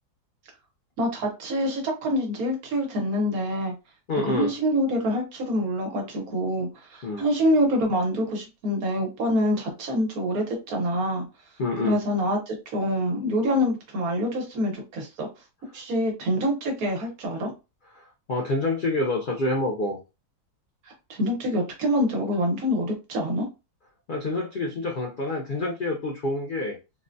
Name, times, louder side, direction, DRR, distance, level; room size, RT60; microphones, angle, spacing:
voice 1, 1.0-3.7 4.3-11.2 11.8-15.3 15.7-17.5 21.1-23.5, equal, 65° right, 1.4 m, -26 dB
voice 2, 4.1-4.5 7.0-7.2 11.6-12.0 17.9-20.0 24.1-26.8, left 2 dB, 70° left, 0.4 m, -27 dB
3.8 x 2.1 x 2.5 m
omnidirectional pair, 1.7 m